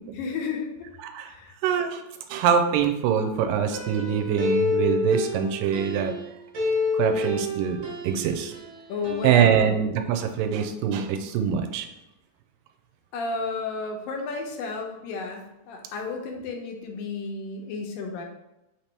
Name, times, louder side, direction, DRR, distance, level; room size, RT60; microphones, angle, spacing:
voice 1, 0.1-0.9 1.3-1.5 8.9-9.8 13.1-18.2, left 4 dB, 85° left, 2 dB, 2.4 m, -32 dB
voice 2, 1.0-1.3 1.6-2.0 2.3-6.1 6.9-7.8 8.0-8.5 9.2-11.9, right 8 dB, 85° right, 6 dB, 2.2 m, -24 dB
sound 1, 3.7-6.3 6.5-8.7 9.0-9.3, left 2 dB, 60° right, 1.9 m, -28 dB
5.4 x 2.9 x 3.3 m, 0.91 s
omnidirectional pair, 4.0 m